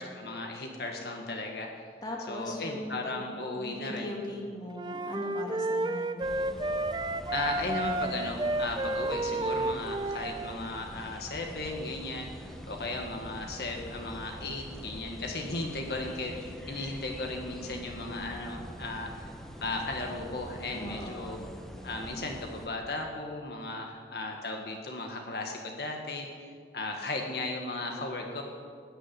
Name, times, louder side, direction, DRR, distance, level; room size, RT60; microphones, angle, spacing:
voice 1, 0.0-1.9 2.3-4.1 7.3-19.3 19.6-21.4 21.8-26.3 26.7-28.4, left 2 dB, 65° left, 1 dB, 1.6 m, -36 dB
voice 2, 2.0-3.3 3.6-6.2 20.7-21.5, left 1 dB, 20° left, -1 dB, 2.1 m, -39 dB
sound 1, 4.8-10.6, right 2 dB, 25° right, 0.5 m, -31 dB
sound 2, 6.2-22.7, equal, ahead, 1.0 m, -45 dB
17.5 x 7.0 x 9.7 m, 2.2 s
head